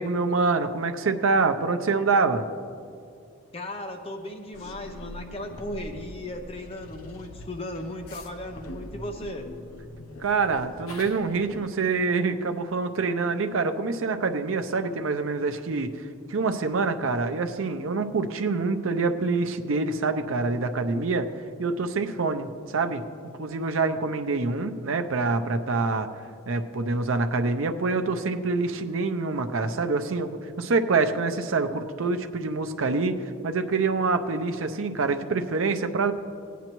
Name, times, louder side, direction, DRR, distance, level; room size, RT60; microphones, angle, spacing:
voice 1, 0.0-2.4 10.2-21.3 21.6-23.0 23.4-26.1 26.5-36.1, right 4 dB, 75° right, 7 dB, 0.6 m, -26 dB
voice 2, 3.5-9.5, left 1 dB, 30° left, 4 dB, 0.5 m, -36 dB
sound 1, 4.5-11.7, left 1 dB, 90° left, 0.7 m, -43 dB
17.5 x 9.2 x 3.0 m, 2.4 s
head